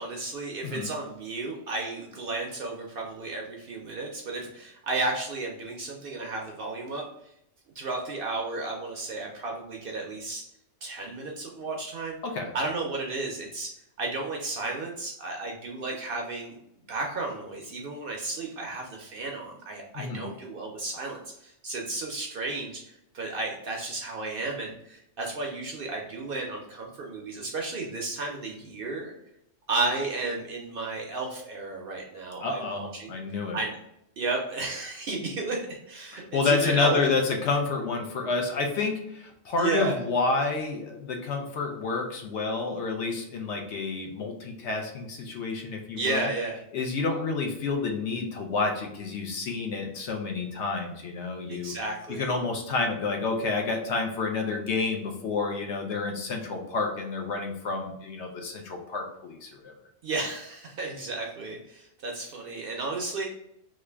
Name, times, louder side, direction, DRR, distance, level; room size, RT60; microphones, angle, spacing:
voice 1, 0.0-7.0 7.8-10.4 10.8-12.2 12.5-13.7 14.0-16.6 16.9-29.1 29.7-33.1 33.5-33.8 34.2-37.0 39.6-40.0 46.0-46.6 51.5-52.3 60.0-63.3, right 3 dB, 60° right, 0 dB, 0.6 m, -33 dB
voice 2, 19.9-20.3 32.4-33.6 36.1-46.3 46.7-51.7 52.1-59.7, left 4 dB, 70° left, 2 dB, 0.9 m, -29 dB
3.1 x 2.4 x 3.3 m, 0.78 s
omnidirectional pair, 1.3 m